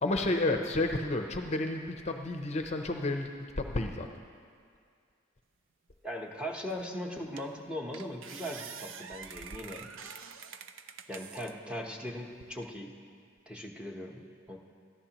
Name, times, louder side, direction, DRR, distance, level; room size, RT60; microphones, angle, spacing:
voice 1, 0.0-3.3 3.6-4.1, left 2 dB, 35° left, 4 dB, 0.6 m, -31 dB
voice 2, 6.0-9.9 11.1-12.9 13.5-14.6, equal, 5° right, -1 dB, 1.0 m, -39 dB
sound 1, 6.7-6.8 7.4-7.6 7.9-11.5 12.1-12.7, right 6 dB, 85° right, 0.6 m, -46 dB
21.5 x 14.0 x 3.0 m, 2.2 s
head